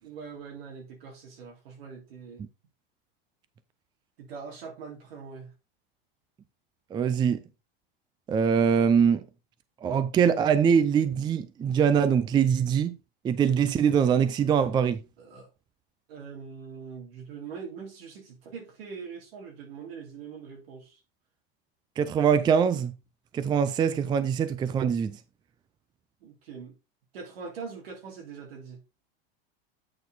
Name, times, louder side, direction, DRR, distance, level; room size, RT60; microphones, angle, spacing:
voice 1, 0.0-2.4 4.2-5.5 15.2-15.5 16.1-21.0 26.2-26.7 27.1-28.8, right 5 dB, 80° right, 3.2 m, -42 dB
voice 2, 6.9-7.4 8.3-9.2 9.8-13.0 13.2-15.0 22.0-22.9 23.3-25.2, right 7 dB, 15° right, 0.4 m, -23 dB
8.6 x 4.4 x 3.9 m
supercardioid pair, 140°, 29 cm